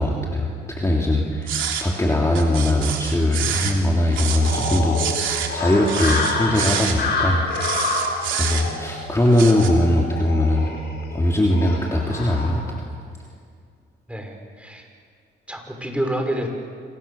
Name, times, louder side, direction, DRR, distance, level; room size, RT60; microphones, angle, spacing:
voice 1, 0.0-7.4 8.3-10.7 11.1-12.9, left 1 dB, 15° left, -1 dB, 3.1 m, -20 dB
sound 1, 1.5-1.9 2.4-3.8 4.1-5.5 5.9-7.0 7.5-8.9 9.3-9.7, right 8 dB, 75° right, 3.4 m, -27 dB
sound 2, 4.4-12.5, left 3 dB, 55° left, 7.4 m, -28 dB
voice 2, 14.1-14.9 15.5-16.5, right 1 dB, 5° right, 3 dB, 5.7 m, -28 dB
28.0 x 24.5 x 7.1 m, 2.2 s
cardioid pair, 90°, 20 cm